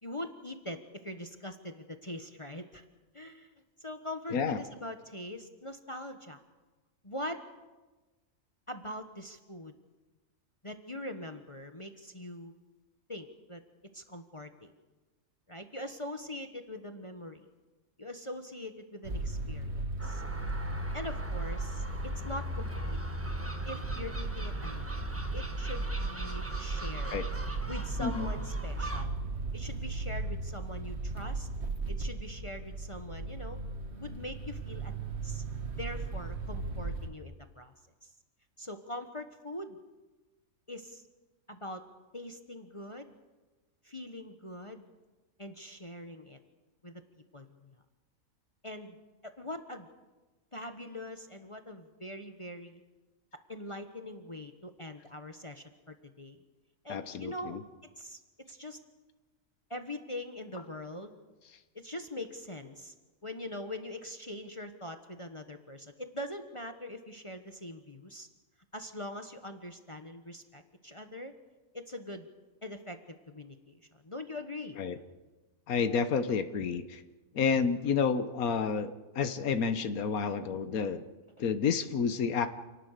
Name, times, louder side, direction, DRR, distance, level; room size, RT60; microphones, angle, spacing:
voice 1, 0.0-2.8 3.1-3.5 3.8-6.4 7.0-7.4 8.7-9.7 10.6-12.5 13.1-13.6 13.9-14.7 15.5-17.5 18.0-20.2 20.9-23.0 23.6-25.0 25.3-27.2 27.7-29.2 29.5-31.5 31.9-33.6 34.0-34.9 35.2-35.4 35.8-37.7 38.0-38.1 38.6-39.8 40.7-41.0 41.5-41.8 42.1-43.1 43.8-44.8 45.4-46.4 46.8-47.0 47.3-47.7 48.6-49.0 49.2-49.9 50.5-52.8 53.5-56.4 56.8-57.6 58.0-58.2 58.5-58.8 59.7-61.2 61.7-62.9 63.2-68.3 68.7-71.3 71.7-72.3 72.6-74.8, left 1 dB, 25° left, 6 dB, 1.3 m, -42 dB
sound 1, 19.0-37.1, right 2 dB, 50° right, 1.7 m, -36 dB
Gull seagull, 20.0-29.0, right 1 dB, 10° right, 1.5 m, -42 dB
voice 2, 28.0-28.3 56.9-57.6 74.8-75.0 75.7-77.0 77.3-81.0 81.4-82.5, left 6 dB, 80° left, 10 dB, 1.6 m, -30 dB
29.0 x 18.5 x 6.7 m, 1.2 s
omnidirectional pair, 1.5 m